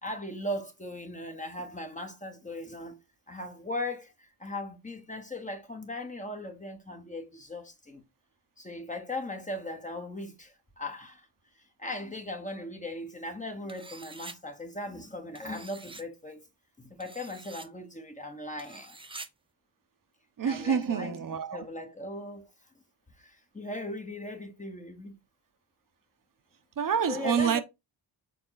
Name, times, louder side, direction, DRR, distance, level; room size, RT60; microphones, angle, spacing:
voice 1, 0.0-3.0 3.3-8.0 8.6-11.3 11.5-16.4 16.8-19.0 20.4-21.2 21.5-22.5 23.2-25.1 27.1-27.6, left 1 dB, 15° left, 1.2 m, -38 dB
sound 1, 13.7-14.4 15.3-16.0 17.0-17.7 18.6-19.3, right 3 dB, 10° right, 0.6 m, -46 dB
voice 2, 20.4-21.7 26.8-27.6, right 7 dB, 45° right, 1.1 m, -27 dB
6.8 x 3.8 x 3.9 m
cardioid pair, 110°, 46 cm